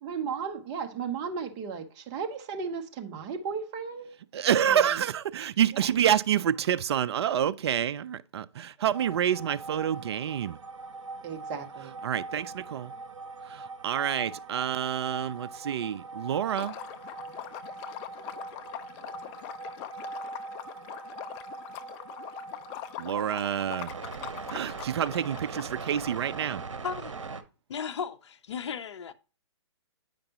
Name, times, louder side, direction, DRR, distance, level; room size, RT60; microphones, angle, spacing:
voice 1, 0.0-4.1 4.7-5.0 5.7-5.9 11.2-11.9, right 6 dB, 25° right, 1.0 m, -35 dB
voice 2, 4.3-10.6 12.0-12.9 13.5-16.7 23.0-23.9 24.5-26.6, right 9 dB, 60° right, 0.4 m, -28 dB
sound 1, 8.9-27.4, right 3 dB, 85° right, 0.9 m, -41 dB
Liquid, 16.5-26.4, left 13 dB, 25° left, 0.4 m, -43 dB
voice 3, 26.8-27.1 27.7-29.1, left 7 dB, 65° left, 0.6 m, -35 dB
8.9 x 5.1 x 2.9 m
hypercardioid pair, 135°, 16 cm